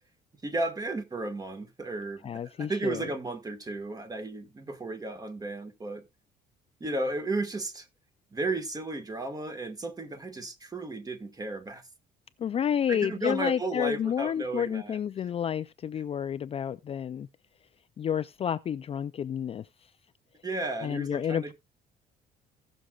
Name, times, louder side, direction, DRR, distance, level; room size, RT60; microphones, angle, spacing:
voice 1, 0.4-6.0 6.8-7.9 8.3-11.8 12.9-15.0 20.4-21.5, right 2 dB, 20° right, 1.6 m, -34 dB
voice 2, 2.2-3.0 12.4-17.3 18.0-19.7 20.8-21.5, left 8 dB, 35° left, 0.4 m, -30 dB
16.5 x 6.3 x 2.4 m
cardioid pair, 110°, 17 cm